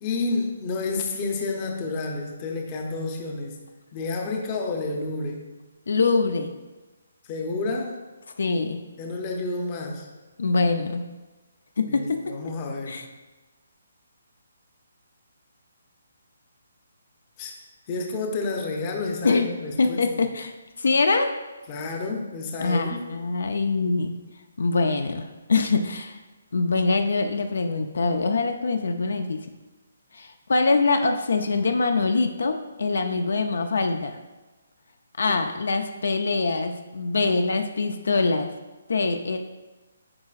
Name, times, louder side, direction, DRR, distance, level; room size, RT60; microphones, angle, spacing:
voice 1, 0.0-3.5 3.9-5.4 7.3-8.0 9.0-10.1 11.9-13.0 17.4-17.6 17.9-20.1 21.7-23.0 35.3-35.4, left 3 dB, 25° left, 2 dB, 0.7 m, -30 dB
voice 2, 5.9-6.5 8.4-8.8 10.4-11.0 11.8-12.2 12.9-13.0 19.2-19.5 19.8-21.3 22.6-24.1 24.6-26.2 26.5-29.4 30.1-34.2 35.2-38.5 38.9-39.4, left 3 dB, 75° left, 7 dB, 0.5 m, -24 dB
8.6 x 4.7 x 2.4 m, 1.2 s
hypercardioid pair, 165°, 0 cm